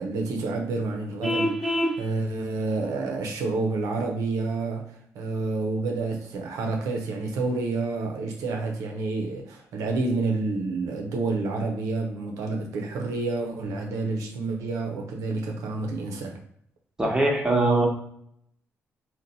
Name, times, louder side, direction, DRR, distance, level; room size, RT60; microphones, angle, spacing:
voice 1, 0.0-16.4, right 3 dB, 90° right, 0.5 m, -29 dB
Vehicle horn car horn honking, 1.2-2.0, equal, 5° left, 0.4 m, -25 dB
voice 2, 17.0-17.9, right 2 dB, 15° right, 0.8 m, -21 dB
2.6 x 2.1 x 3.9 m
cardioid pair, 90°, 5 cm